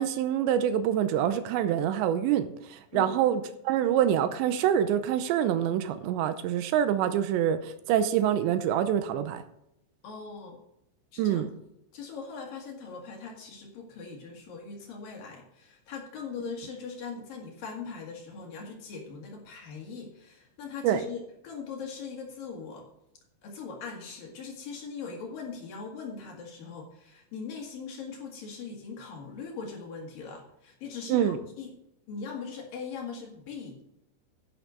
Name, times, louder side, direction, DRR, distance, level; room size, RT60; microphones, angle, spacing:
voice 1, 0.0-9.4 11.2-11.5 20.8-21.0 31.1-31.4, right 10 dB, 85° right, 10 dB, 2.7 m, -26 dB
voice 2, 10.0-10.6 11.1-11.4 11.9-22.9 23.4-31.8 32.1-33.9, left 5 dB, 55° left, 0 dB, 3.1 m, -40 dB
11.0 x 10.5 x 3.9 m, 0.81 s
omnidirectional pair, 5.7 m